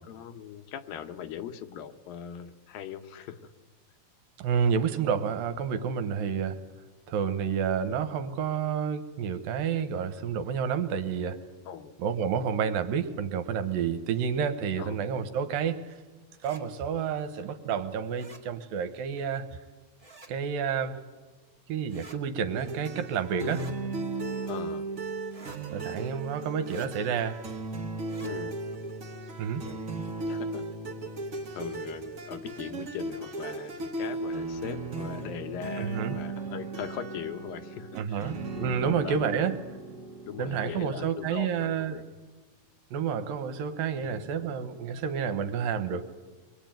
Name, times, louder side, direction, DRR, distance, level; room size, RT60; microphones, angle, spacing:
voice 1, 0.0-3.5 6.3-6.4 11.7-11.9 14.8-15.0 23.4-23.9 24.5-24.8 28.2-28.6 29.5-30.6 31.5-39.5 40.3-42.2 44.0-44.3, left 9 dB, 75° left, 8 dB, 2.6 m, -40 dB
voice 2, 4.4-6.6 7.1-11.4 12.0-15.8 16.4-19.5 20.3-21.0 21.7-23.6 25.7-27.4 29.4-29.7 35.8-36.2 38.0-38.3 38.6-39.6 40.4-42.0 42.9-46.0, right 7 dB, 75° right, 10 dB, 2.7 m, -29 dB
sound 1, 16.3-16.6 18.2-18.4 20.0-20.3 21.9-22.2 23.4-23.8 25.3-25.6 26.6-26.9 28.0-28.3, right 2 dB, 15° right, 1.1 m, -49 dB
sound 2, 22.5-41.9, right 3 dB, 55° right, 0.9 m, -36 dB
24.0 x 22.5 x 9.1 m, 1.3 s
omnidirectional pair, 4.4 m